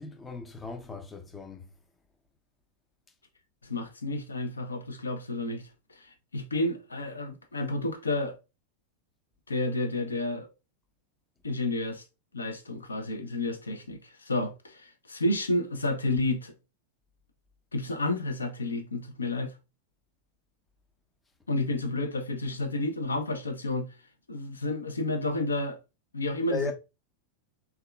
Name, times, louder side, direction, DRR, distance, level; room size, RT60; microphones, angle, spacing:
voice 1, 0.0-1.7 26.5-26.7, left 4 dB, 15° left, 0.5 m, -36 dB
voice 2, 3.6-5.7 6.0-8.4 9.5-10.5 11.4-12.0 12.3-16.5 17.7-19.5 21.5-23.9 24.3-25.8 26.1-26.7, left 2 dB, 75° left, 0.5 m, -31 dB
3.5 x 2.3 x 2.2 m
figure-of-eight pair, 90°, 0 cm